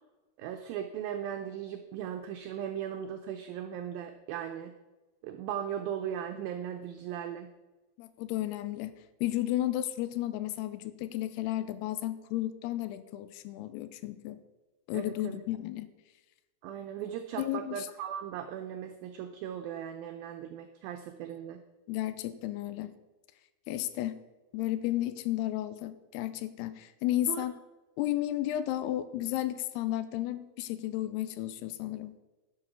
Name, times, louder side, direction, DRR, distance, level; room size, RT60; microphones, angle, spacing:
voice 1, 0.4-4.7 5.2-7.5 14.9-15.4 16.6-21.6 27.3-27.4, right 9 dB, 80° right, 6 dB, 2.2 m, -38 dB
voice 2, 8.0-8.9 9.2-14.4 14.9-15.9 17.4-17.9 21.9-22.9 23.7-24.2 24.5-27.6 28.0-32.2, left 14 dB, 90° left, 12 dB, 2.7 m, -33 dB
11.5 x 7.4 x 5.8 m, 1.1 s
omnidirectional pair, 4.7 m